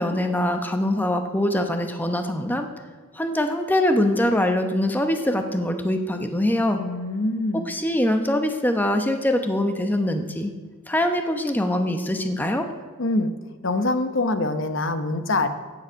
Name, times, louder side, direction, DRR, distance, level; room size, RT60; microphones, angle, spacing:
voice 1, 0.0-2.7 3.1-6.8 7.7-10.5 10.9-12.7, left 1 dB, 10° left, 6 dB, 0.9 m, -23 dB
voice 2, 6.8-7.7 13.0-13.3 13.6-15.5, left 2 dB, 60° left, 9 dB, 0.9 m, -24 dB
16.0 x 7.2 x 6.2 m, 1.4 s
head